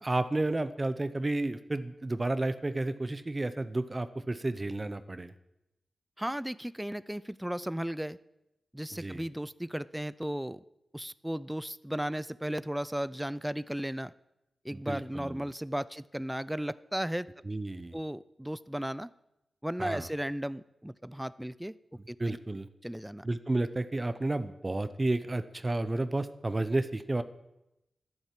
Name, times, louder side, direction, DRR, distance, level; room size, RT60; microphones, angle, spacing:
voice 1, 0.0-5.3 8.9-9.3 14.7-15.4 17.5-18.0 19.8-20.1 22.2-22.7 23.2-27.2, right 2 dB, 30° right, 12 dB, 0.7 m, -31 dB
voice 2, 6.2-8.2 8.7-10.6 10.9-14.1 14.6-17.3 17.9-19.1 19.6-21.8 22.1-22.4 22.8-23.3, equal, 5° right, 17 dB, 0.4 m, -35 dB
11.0 x 10.5 x 7.6 m, 0.90 s
cardioid pair, 65°, 0 cm